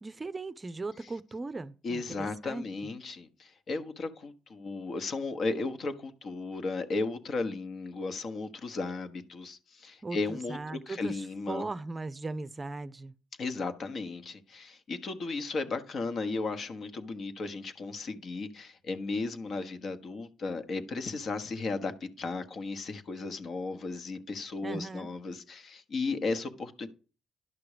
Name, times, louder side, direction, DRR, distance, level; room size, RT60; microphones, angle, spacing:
voice 1, 0.0-2.6 10.0-13.1 24.6-25.1, right 3 dB, 25° right, 0.6 m, -38 dB
voice 2, 1.8-11.7 13.4-26.9, left 3 dB, 55° left, 1.3 m, -35 dB
11.0 x 6.0 x 5.0 m
cardioid pair, 90°, 0 cm